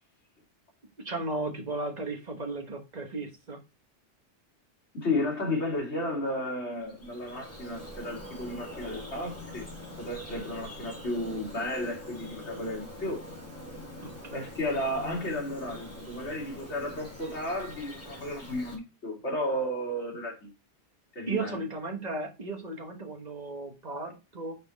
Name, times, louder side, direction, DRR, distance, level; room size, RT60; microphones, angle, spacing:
voice 1, 1.0-3.6 14.0-14.5 21.3-24.6, right 3 dB, 40° right, 1.3 m, -35 dB
voice 2, 4.9-9.6 10.0-13.2 14.3-20.5 21.1-21.6, left 1 dB, 75° left, 2.4 m, -33 dB
Bird vocalization bird call bird song, 6.7-18.8, left 1 dB, 10° left, 2.3 m, -44 dB
5.5 x 4.3 x 4.0 m
omnidirectional pair, 1.2 m